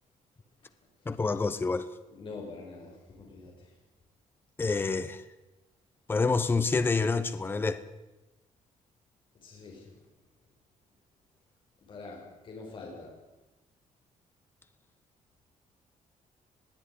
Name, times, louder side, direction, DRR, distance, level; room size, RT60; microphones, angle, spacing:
voice 1, 1.1-1.9 4.6-5.2 6.1-7.8, left 4 dB, 15° left, 0.9 m, -27 dB
voice 2, 2.1-3.7 9.4-10.0 11.9-13.1, left 3 dB, 40° left, 6.4 m, -45 dB
21.0 x 16.0 x 9.9 m
cardioid pair, 175°, 13 cm